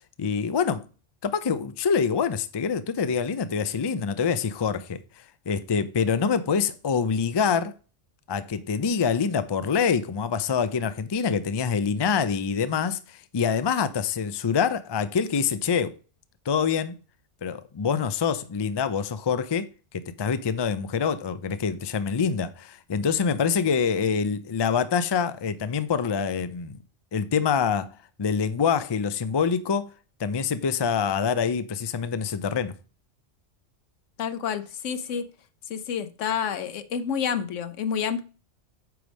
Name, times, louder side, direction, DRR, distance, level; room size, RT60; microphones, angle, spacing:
voice 1, 0.2-0.8 1.2-5.0 5.5-7.7 8.3-16.0 16.5-17.0 17.4-19.7 19.9-26.8 27.1-27.9 28.2-29.9 30.2-32.7, left 6 dB, 40° left, 0.4 m, -25 dB
voice 2, 34.2-35.3 35.7-38.2, left 7 dB, 85° left, 1.1 m, -29 dB
9.3 x 3.5 x 6.2 m
omnidirectional pair, 1.2 m